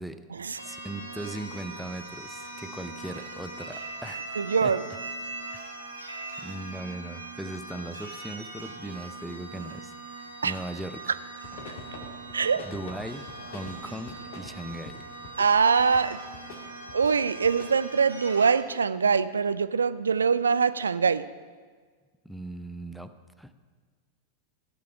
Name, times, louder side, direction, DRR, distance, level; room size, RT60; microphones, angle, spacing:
sound 1, 0.5-18.6, right 3 dB, 90° right, 2.0 m, -41 dB
voice 1, 0.6-4.8 6.4-11.1 12.6-15.1 22.2-23.5, right 1 dB, ahead, 11 dB, 0.6 m, -39 dB
voice 2, 4.4-4.8 10.4-10.5 11.7-11.8 12.3-12.6 15.4-16.2 16.9-21.3, right 5 dB, 75° right, 14 dB, 0.3 m, -23 dB
sound 2, 11.4-17.8, left 3 dB, 50° left, 1.8 m, -46 dB
15.5 x 6.8 x 5.7 m, 1.5 s
figure-of-eight pair, 90°, 0 cm